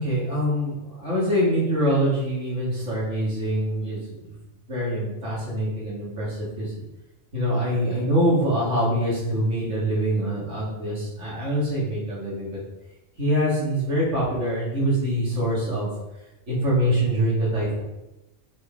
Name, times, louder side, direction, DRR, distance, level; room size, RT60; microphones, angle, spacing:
voice 1, 0.0-4.3 4.7-6.7 7.3-12.6 13.2-15.9 16.5-17.8, equal, 65° right, -7 dB, 3.2 m, -24 dB
6.8 x 5.0 x 5.0 m, 0.96 s
omnidirectional pair, 1.3 m